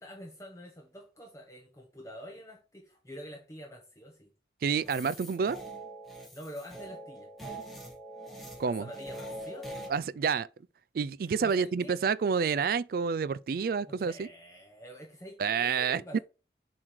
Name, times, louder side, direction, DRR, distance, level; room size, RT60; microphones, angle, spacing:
voice 1, 0.0-4.3 6.3-7.3 8.6-9.9 11.4-12.0 13.8-16.2, equal, 15° left, 1.0 m, -47 dB
voice 2, 4.6-5.6 8.6-8.8 9.9-10.5 10.9-14.3 15.4-16.2, right 6 dB, 55° right, 0.3 m, -29 dB
sound 1, 4.8-9.9, right 1 dB, ahead, 1.3 m, -43 dB
7.2 x 3.2 x 6.0 m
head